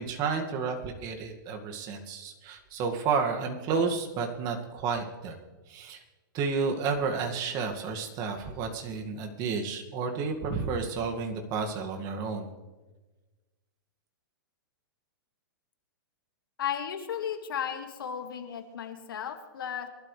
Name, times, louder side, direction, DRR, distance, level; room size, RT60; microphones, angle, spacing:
voice 1, 0.0-5.4 5.7-6.0 6.3-12.5, right 5 dB, 35° right, 3 dB, 2.1 m, -31 dB
voice 2, 16.6-19.9, left 9 dB, 80° left, 6 dB, 2.1 m, -35 dB
24.0 x 12.0 x 3.4 m, 1.2 s
hypercardioid pair, 135°, 12 cm